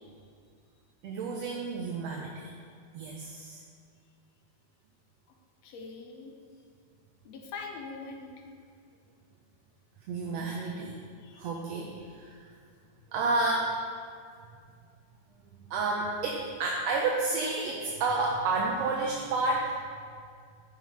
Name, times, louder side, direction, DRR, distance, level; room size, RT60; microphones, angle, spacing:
voice 1, 1.0-2.5 2.9-3.6 10.1-11.0 11.4-12.4 13.1-13.7 15.7-19.8, right 3 dB, 70° right, -1 dB, 1.7 m, -30 dB
voice 2, 5.6-6.3 7.3-8.4 11.2-11.5, left 4 dB, 70° left, 2 dB, 1.9 m, -43 dB
11.0 x 5.8 x 4.7 m, 2.2 s
omnidirectional pair, 3.4 m